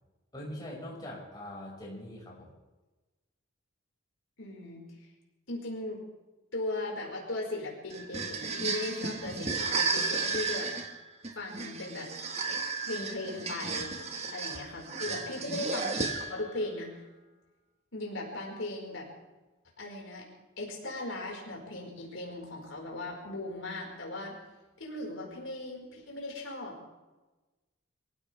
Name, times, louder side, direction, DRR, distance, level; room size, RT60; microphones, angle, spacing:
voice 1, 0.3-2.5 15.2-15.4, left 1 dB, 20° left, -4 dB, 6.0 m, -42 dB
voice 2, 4.4-4.8 5.5-6.0 6.5-10.7 11.3-12.1 12.8-13.9 14.3-17.0 17.9-19.1 19.8-20.2 20.6-24.4 24.8-26.7, left 2 dB, 75° left, -1 dB, 5.0 m, -38 dB
sound 1, 7.9-16.5, right 4 dB, 30° right, 1.6 m, -33 dB
24.5 x 16.5 x 3.5 m, 1.1 s
head